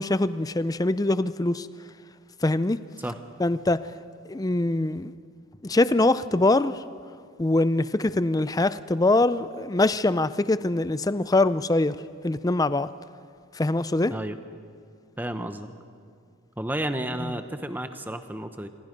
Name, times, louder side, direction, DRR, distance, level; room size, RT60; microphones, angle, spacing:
voice 1, 0.0-1.7 2.4-2.8 3.4-3.8 4.3-5.1 5.6-6.7 7.4-12.0 12.2-12.9 13.6-14.1, left 2 dB, 15° left, 14 dB, 0.4 m, -23 dB
voice 2, 15.2-15.7 16.6-18.7, right 1 dB, 10° right, 8 dB, 0.9 m, -32 dB
27.0 x 22.5 x 5.3 m, 2.1 s
head